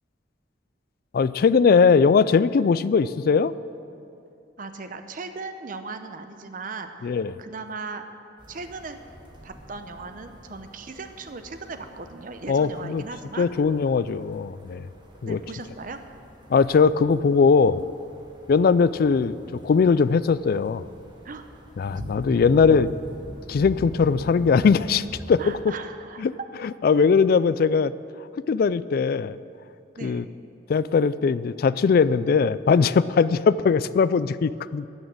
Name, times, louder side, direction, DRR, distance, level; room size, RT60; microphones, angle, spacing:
voice 1, 1.1-3.5 7.0-7.4 12.5-13.0 13.4-14.9 15.2-15.4 16.5-17.8 18.5-19.4 19.6-20.8 21.8-22.9 23.5-25.4 26.2-26.3 26.6-27.9 28.5-29.4 30.0-30.2 30.7-34.9, left 5 dB, 50° left, 16 dB, 0.3 m, -20 dB
voice 2, 4.6-7.1 7.4-8.0 8.5-9.0 9.4-13.5 15.2-16.0 21.2-21.5 21.9-22.4 25.4-26.3 30.0-30.2, right 3 dB, 45° right, 8 dB, 0.8 m, -38 dB
sound 1, 8.4-25.6, right 1 dB, 25° right, 1.4 m, -43 dB
13.0 x 6.4 x 9.2 m, 2.7 s
head